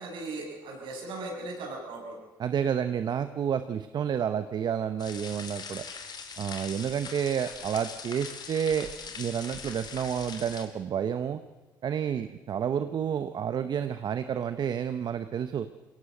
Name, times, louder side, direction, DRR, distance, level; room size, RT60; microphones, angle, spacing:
voice 1, 0.0-2.2, right 2 dB, 75° right, 0 dB, 6.8 m, -38 dB
voice 2, 2.4-5.8 6.4-8.9 9.2-11.4 11.8-15.7, right 8 dB, 60° right, 11 dB, 0.9 m, -30 dB
sound 1, 5.0-10.7, left 5 dB, 55° left, 3.1 m, -41 dB
22.5 x 17.0 x 7.8 m, 1.2 s
cardioid pair, 75°, 8 cm